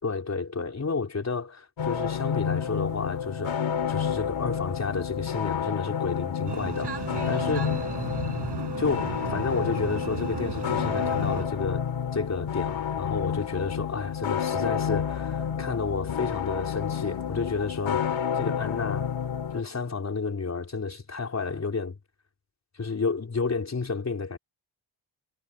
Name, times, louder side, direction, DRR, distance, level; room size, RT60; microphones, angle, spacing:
voice 1, 0.0-3.6 3.9-7.7 8.8-11.9 12.1-18.1 18.3-19.1 19.5-22.0 22.7-24.4, left 4 dB, 35° left, 4.2 m, -31 dB
sound 1, 1.8-19.6, left 8 dB, 70° left, 2.4 m, -30 dB
sound 2, 6.5-11.4, right 7 dB, 55° right, 6.4 m, -35 dB
wide cardioid pair, 145°, 48 cm